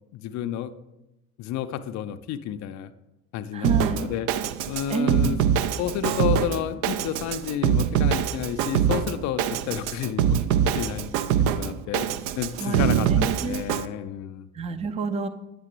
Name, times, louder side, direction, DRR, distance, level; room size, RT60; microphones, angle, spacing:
voice 1, 0.1-0.7 1.4-2.9 3.3-4.3 4.7-5.4 5.8-10.4 10.8-11.0 11.6-14.5, left 10 dB, 40° left, 10 dB, 0.5 m, -31 dB
voice 2, 3.5-4.1 4.9-5.4 12.6-13.6 14.5-15.3, right 4 dB, 15° right, 11 dB, 0.5 m, -28 dB
Drum kit, 3.6-13.9, right 9 dB, 60° right, 0.5 m, -24 dB
8.9 x 6.8 x 3.0 m, 0.92 s
figure-of-eight pair, 55°, 45 cm